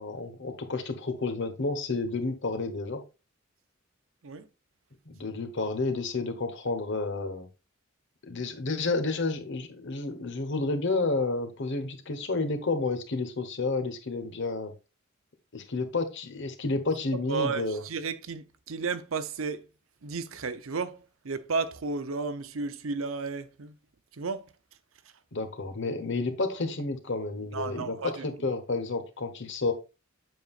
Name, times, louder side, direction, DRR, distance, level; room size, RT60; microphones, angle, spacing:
voice 1, 0.0-3.0 5.1-7.5 8.2-14.7 15.5-17.8 25.3-29.7, left 3 dB, 60° left, 1.1 m, -30 dB
voice 2, 17.3-19.6 20.0-21.0 21.2-23.7 24.2-24.4 27.5-28.2, right 4 dB, 75° right, 0.7 m, -33 dB
7.7 x 5.4 x 2.4 m
head